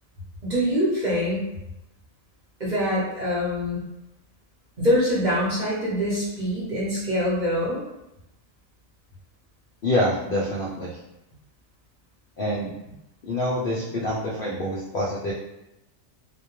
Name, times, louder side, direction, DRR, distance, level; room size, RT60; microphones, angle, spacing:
voice 1, 0.4-1.5 2.6-3.8 4.8-7.8, equal, 40° right, -8 dB, 0.8 m, -24 dB
voice 2, 9.8-11.0 12.4-13.0 13.2-15.3, left 1 dB, 65° left, -4 dB, 0.5 m, -26 dB
2.2 x 2.2 x 2.9 m, 0.91 s
omnidirectional pair, 1.4 m